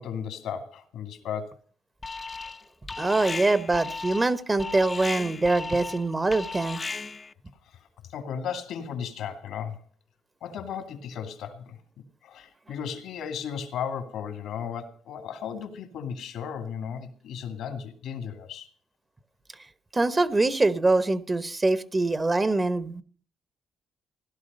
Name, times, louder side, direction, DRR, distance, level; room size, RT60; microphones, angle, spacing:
voice 1, 0.0-1.5 7.7-7.8 8.1-9.8 10.4-11.8 12.2-18.7, left 7 dB, 80° left, 9 dB, 2.4 m, -35 dB
Alarm, 2.0-2.6 2.9-7.3, left 4 dB, 30° left, 0.7 m, -35 dB
voice 2, 3.0-6.8 19.9-23.0, right 2 dB, 25° right, 15 dB, 1.1 m, -24 dB
16.5 x 11.5 x 5.4 m, 0.41 s
cardioid pair, 90°, 0 cm